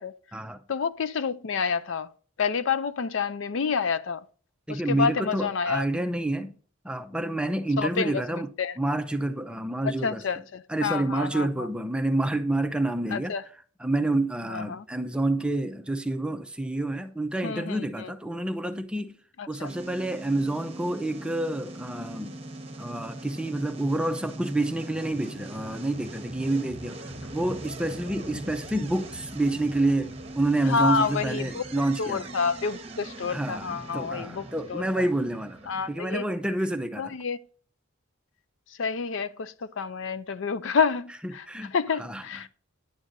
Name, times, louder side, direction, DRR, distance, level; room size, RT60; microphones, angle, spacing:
voice 1, 0.7-2.1 2.4-4.2 4.7-5.9 7.8-8.2 8.6-8.7 9.8-11.7 13.1-13.4 14.5-14.8 17.4-18.1 19.4-19.7 30.6-31.6 32.0-34.9 35.7-36.2 37.0-37.4 38.7-41.5 41.7-42.5, left 5 dB, 60° left, 0.4 m, -28 dB
voice 2, 4.7-6.6 6.8-8.5 8.8-10.2 10.7-13.3 13.8-19.2 19.5-22.4 22.8-32.3 33.3-35.6 35.9-37.1 41.2-41.7 42.0-42.2, right 1 dB, 5° right, 0.5 m, -28 dB
sound 1, 19.6-36.0, right 2 dB, 30° right, 1.0 m, -41 dB
10.0 x 8.7 x 2.6 m
head